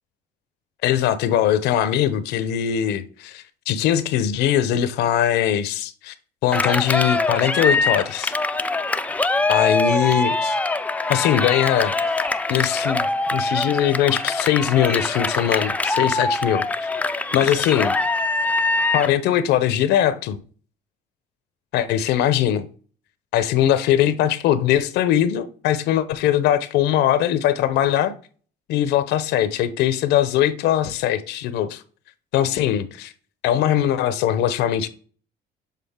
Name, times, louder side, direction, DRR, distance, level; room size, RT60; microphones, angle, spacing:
voice 1, 0.8-6.1 6.4-8.3 9.5-10.6 11.1-13.1 13.3-16.9 17.3-17.9 18.9-20.4 21.7-22.7 23.3-28.1 28.7-31.8 32.3-33.1 33.4-34.9, left 11 dB, 85° left, 0.7 m, -21 dB
Cheering, 6.5-19.2, left 2 dB, 10° left, 0.3 m, -23 dB
7.4 x 3.7 x 3.6 m
cardioid pair, 110°, 17 cm